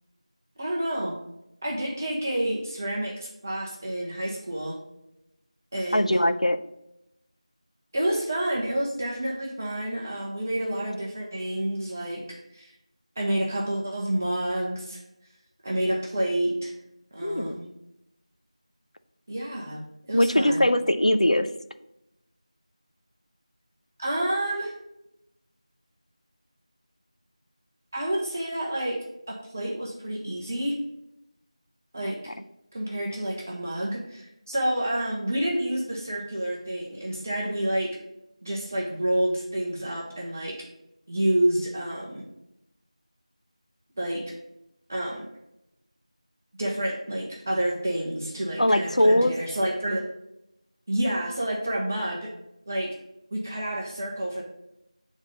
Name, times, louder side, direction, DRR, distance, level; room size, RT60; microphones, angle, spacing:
voice 1, 0.6-1.2 1.6-4.8 5.7-6.2 7.9-12.7 13.2-15.0 15.6-16.7 17.1-17.7 19.3-19.8 20.1-20.7 24.0-24.7 27.9-29.0 29.3-30.8 31.9-32.3 32.7-38.0 38.4-40.7 41.1-42.2 44.0-44.3 44.9-45.2 46.6-50.1 50.9-52.3 52.7-53.0 53.3-54.4, right 1 dB, 25° right, -2 dB, 0.7 m, -29 dB
voice 2, 5.9-6.6 17.2-17.6 20.1-21.5 32.0-32.3 48.6-49.4, left 1 dB, 85° left, 9 dB, 0.6 m, -21 dB
7.7 x 3.6 x 4.1 m, 0.84 s
figure-of-eight pair, 170°, 4 cm